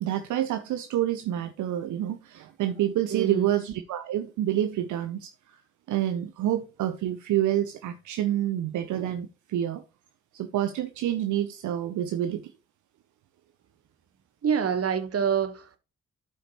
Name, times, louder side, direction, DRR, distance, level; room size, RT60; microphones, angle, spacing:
voice 1, 0.0-5.6 5.9-9.8 10.3-12.4, right 12 dB, 70° right, 0.7 m, -28 dB
voice 2, 3.1-3.5 14.4-15.8, right 7 dB, 50° right, 1.2 m, -26 dB
12.5 x 5.0 x 3.0 m
hypercardioid pair, 40°, 31 cm